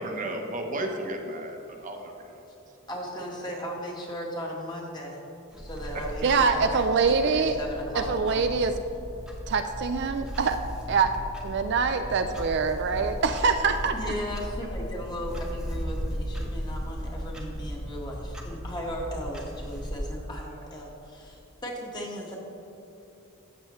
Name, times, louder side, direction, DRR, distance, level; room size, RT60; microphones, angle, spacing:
voice 1, 0.0-2.4 5.9-6.0, right 1 dB, 40° right, 2 dB, 0.9 m, -34 dB
voice 2, 2.9-5.2 5.5-6.9 7.2-8.5 13.9-22.4, equal, 20° left, -2 dB, 1.4 m, -37 dB
Clock, 5.5-20.0, equal, 5° right, 1.0 m, -36 dB
voice 3, 6.2-7.6 7.9-8.7 9.5-10.6 10.9-11.1 11.4-14.1, right 5 dB, 55° right, 7 dB, 0.4 m, -24 dB
13.5 x 7.9 x 3.1 m, 2.9 s
head